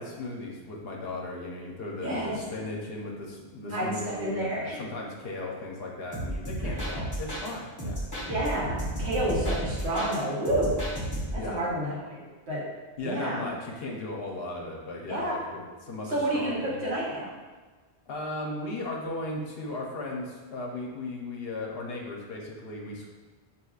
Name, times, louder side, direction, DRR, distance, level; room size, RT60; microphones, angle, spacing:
voice 1, 0.0-8.0 11.4-11.6 13.0-16.8 18.1-23.1, left 2 dB, 65° left, -1 dB, 0.9 m, -36 dB
voice 2, 2.0-2.3 3.7-4.8 6.6-6.8 8.2-10.7 11.3-12.6 13.0-13.4 15.1-15.4 16.1-17.3, right 1 dB, 75° right, -6 dB, 1.4 m, -30 dB
sound 1, 6.1-7.5 7.8-10.2 10.4-11.5, right 1 dB, 15° left, 1.0 m, -32 dB
5.9 x 2.9 x 2.3 m, 1.3 s
omnidirectional pair, 1.1 m